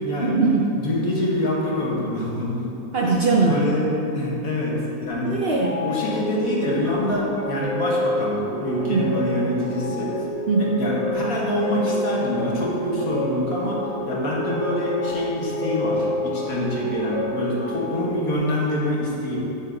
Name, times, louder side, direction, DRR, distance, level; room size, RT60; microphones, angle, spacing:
voice 1, 0.2-0.7 2.9-3.6 5.2-5.8 8.9-9.2 10.5-10.8, right 4 dB, 55° right, -2 dB, 0.7 m, -21 dB
voice 2, 0.8-2.7 3.4-3.8 4.1-5.4 5.8-10.3 10.8-13.8 14.1-19.4, left 1 dB, 70° left, -5 dB, 2.0 m, -25 dB
sound 1, 5.5-18.3, equal, 10° right, 1.0 m, -28 dB
9.7 x 4.4 x 5.2 m, 2.9 s
omnidirectional pair, 1.6 m